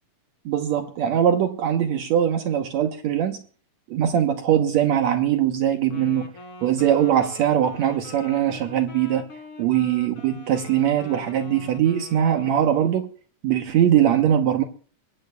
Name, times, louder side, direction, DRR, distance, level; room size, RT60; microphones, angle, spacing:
voice 1, 0.5-3.4 3.9-6.3 6.6-9.3 9.6-13.1 13.4-14.6, right 10 dB, 70° right, 5 dB, 2.2 m, -21 dB
Wind instrument woodwind instrument, 5.8-13.1, left 3 dB, 50° left, 3.3 m, -44 dB
22.0 x 17.0 x 2.3 m, 0.41 s
omnidirectional pair, 3.4 m